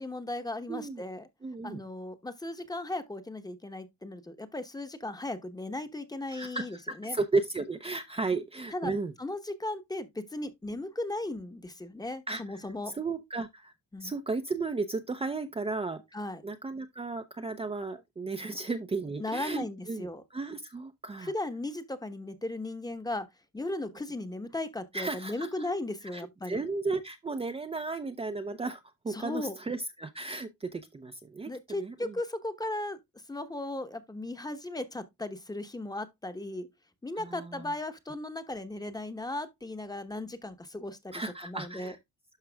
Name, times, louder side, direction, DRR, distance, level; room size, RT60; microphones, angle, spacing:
voice 1, 0.0-1.2 1.6-7.2 8.7-8.9 9.2-12.9 13.9-14.1 16.1-16.4 18.5-18.6 19.2-20.2 21.2-23.3 23.5-26.6 29.1-29.6 31.4-33.0 33.3-36.7 37.0-41.9, left 2 dB, 15° left, 1.1 m, -36 dB
voice 2, 0.7-1.0 1.4-1.8 6.3-9.1 12.3-13.7 14.0-16.0 16.4-21.3 24.9-25.7 26.1-32.1 37.2-37.7 41.1-42.0, right 3 dB, 20° right, 0.6 m, -34 dB
12.0 x 4.6 x 2.3 m
cardioid pair, 90°, 30 cm